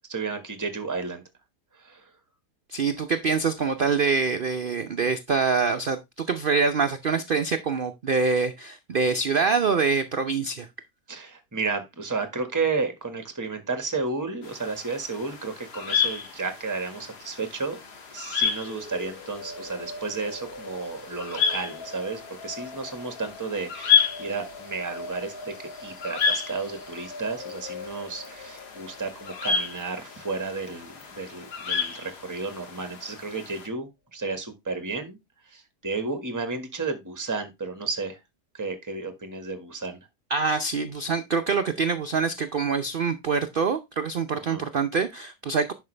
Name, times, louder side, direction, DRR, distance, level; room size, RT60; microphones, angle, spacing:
voice 1, 0.1-1.2 1.7-2.1 11.1-17.8 18.1-35.2 35.4-38.2 38.5-40.0 44.3-44.6, right 4 dB, 10° right, 1.5 m, -32 dB
voice 2, 2.7-10.7 40.3-45.7, right 5 dB, 55° right, 0.6 m, -25 dB
sound 1, 14.4-33.7, left 7 dB, 80° left, 2.1 m, -31 dB
sound 2, 18.6-32.6, left 2 dB, 40° left, 3.6 m, -43 dB
11.0 x 5.8 x 3.3 m
omnidirectional pair, 1.7 m